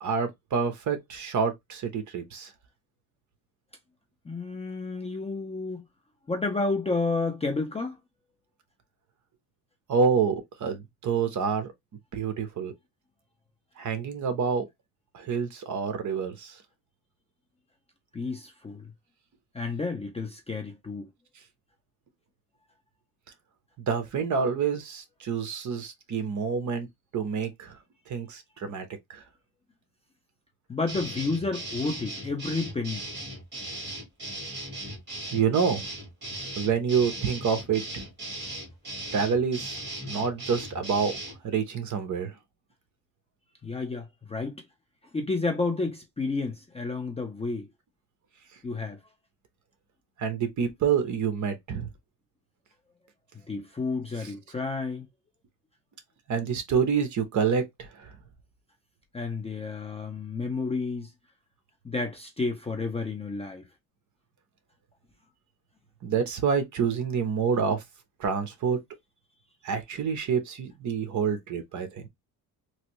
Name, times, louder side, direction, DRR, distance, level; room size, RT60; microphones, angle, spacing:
voice 1, 0.0-2.5 9.9-11.7 12.1-12.7 13.8-14.7 15.1-16.6 23.9-26.9 27.1-27.8 28.1-28.8 29.1-29.2 35.3-35.8 36.6-38.0 39.1-39.8 40.0-41.1 41.4-42.3 50.2-51.9 54.2-54.3 56.3-58.1 66.0-67.8 68.2-68.8 69.6-72.1, right 6 dB, 50° right, 0.9 m, -27 dB
voice 2, 4.3-5.8 6.3-8.0 18.1-18.8 19.5-21.1 30.7-33.1 43.6-44.6 45.1-47.7 48.6-49.0 53.3-55.1 59.1-61.1 61.8-63.6, left 3 dB, 15° left, 0.5 m, -31 dB
sound 1, 30.9-41.4, right 1 dB, 25° right, 1.9 m, -38 dB
3.1 x 2.6 x 3.0 m
cardioid pair, 170°, 39 cm